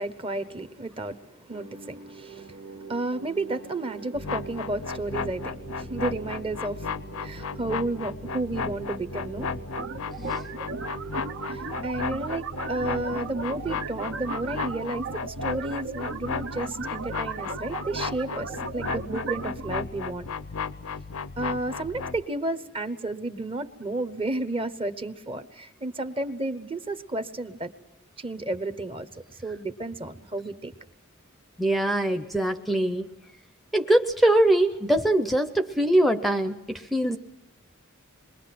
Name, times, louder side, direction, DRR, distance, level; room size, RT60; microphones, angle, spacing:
voice 1, 0.0-6.9 7.2-9.5 11.5-20.3 21.4-27.7 28.2-30.7, right 2 dB, 25° right, 1.0 m, -32 dB
sound 1, 1.5-11.7, right 6 dB, 90° right, 2.0 m, -43 dB
sound 2, 4.1-22.2, left 5 dB, 75° left, 0.7 m, -34 dB
sound 3, 9.8-19.8, right 5 dB, 65° right, 1.0 m, -36 dB
voice 2, 31.6-33.1 33.7-37.2, right 1 dB, ahead, 0.7 m, -22 dB
27.5 x 22.5 x 6.0 m
head